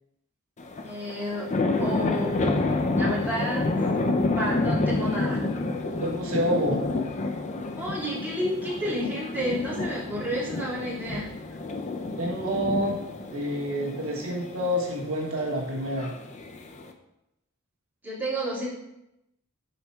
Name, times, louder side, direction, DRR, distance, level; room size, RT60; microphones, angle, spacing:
sound 1, 0.6-16.9, left 2 dB, 35° left, 0.5 m, -29 dB
voice 1, 0.8-1.5 1.8-2.6 2.9-3.9 4.4-5.6 7.8-11.4 18.0-18.7, equal, 10° right, -10 dB, 2.3 m, -31 dB
voice 2, 6.0-6.8 12.2-13.0 13.3-16.1, equal, 85° right, -3 dB, 1.3 m, -28 dB
5.7 x 4.2 x 4.5 m, 0.87 s
head